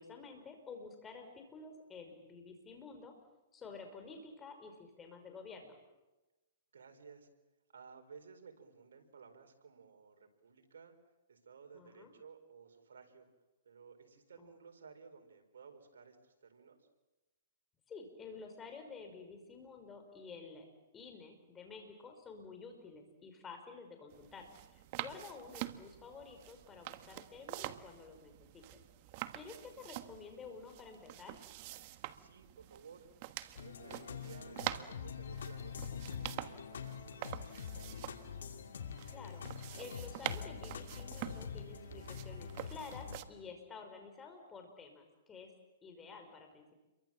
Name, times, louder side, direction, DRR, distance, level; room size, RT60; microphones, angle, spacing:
voice 1, 0.0-3.1 3.5-5.8 11.7-12.1 14.4-14.6 17.9-20.6 20.9-28.8 29.3-31.4 39.1-39.4 39.8-45.5 45.8-46.7, left 4 dB, 15° left, 5 dB, 5.4 m, -51 dB
voice 2, 6.7-7.3 7.7-10.9 11.3-13.3 13.6-16.9 25.0-25.2 32.2-33.1 33.5-38.3, right 5 dB, 85° right, 6 dB, 4.4 m, -57 dB
sound 1, 24.1-43.2, right 15 dB, 40° right, 1.3 m, -46 dB
sound 2, 33.6-43.2, left 7 dB, 80° left, 2.6 m, -45 dB
29.0 x 23.5 x 7.6 m, 1.1 s
hypercardioid pair, 145°, 0 cm